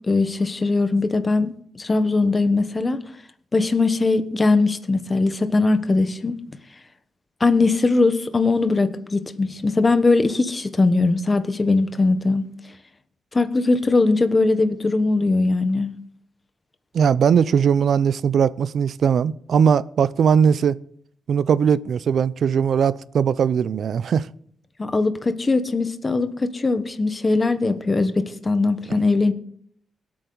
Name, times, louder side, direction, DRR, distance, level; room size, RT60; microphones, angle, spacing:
voice 1, 0.1-3.0 3.5-6.4 7.4-12.4 13.3-15.9 24.8-29.3, left 3 dB, 25° left, 1.1 m, -20 dB
voice 2, 16.9-20.7 21.3-24.3, right 7 dB, 65° right, 0.5 m, -19 dB
25.0 x 8.7 x 3.9 m
wide cardioid pair, 140°, 0 cm